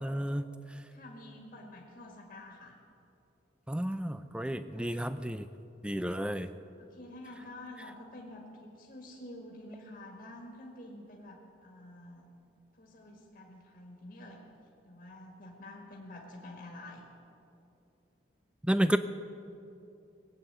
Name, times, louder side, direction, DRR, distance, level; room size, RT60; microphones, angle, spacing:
voice 1, 0.0-0.5 3.7-5.5 5.8-6.5 18.6-19.0, equal, 5° right, 12 dB, 0.4 m, -31 dB
voice 2, 0.9-2.8 6.0-6.3 6.8-12.3 12.8-14.4 14.8-17.1, left 1 dB, 45° left, -1 dB, 1.8 m, -48 dB
19.0 x 8.6 x 8.1 m, 2.7 s
head